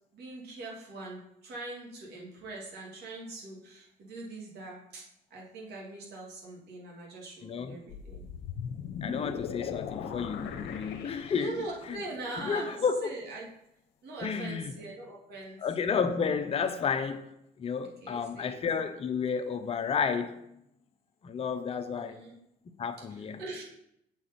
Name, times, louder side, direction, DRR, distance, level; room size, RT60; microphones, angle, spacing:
voice 1, 0.1-5.0 5.3-8.2 11.3-13.5 14.0-15.6 17.8-18.6 22.0-22.3 23.1-23.6, right 2 dB, 65° right, 2.3 m, -42 dB
voice 2, 7.4-7.8 9.0-12.0 12.4-13.1 14.2-14.7 15.6-20.4 21.2-22.2 22.8-23.4, left 6 dB, 35° left, 0.7 m, -32 dB
sound 1, 7.9-11.9, left 7 dB, 75° left, 0.8 m, -38 dB
7.7 x 4.7 x 4.2 m
supercardioid pair, 90°, 18 cm